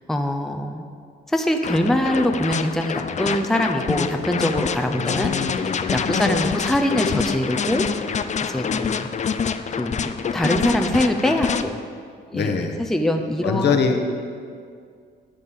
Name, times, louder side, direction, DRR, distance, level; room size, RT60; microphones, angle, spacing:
voice 1, 0.1-0.8 1.3-7.9 8.5-9.1 9.7-11.8 12.3-13.7, left 1 dB, ahead, 4 dB, 0.7 m, -23 dB
sound 1, 1.6-11.6, left 6 dB, 35° left, 0.5 m, -26 dB
voice 2, 4.9-5.6 6.2-6.4 12.3-12.8 13.4-14.0, left 5 dB, 60° left, 4 dB, 1.2 m, -23 dB
12.0 x 5.3 x 7.5 m, 2.2 s
cardioid pair, 90°, 20 cm